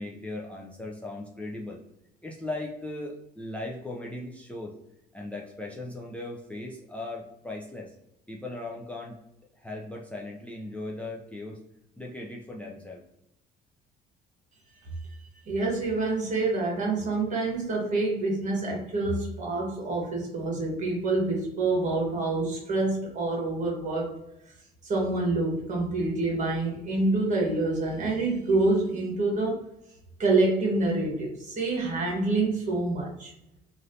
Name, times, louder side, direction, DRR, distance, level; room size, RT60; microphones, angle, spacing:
voice 1, 0.0-1.8 2.2-4.8 5.1-7.9 8.3-9.2 9.6-11.6 12.0-13.0, left 2 dB, 10° left, -2 dB, 0.4 m, -38 dB
voice 2, 15.4-24.1 24.8-29.6 30.2-33.3, right 2 dB, 50° right, -1 dB, 1.3 m, -27 dB
3.1 x 2.6 x 2.6 m, 0.83 s
cardioid pair, 110°, 17 cm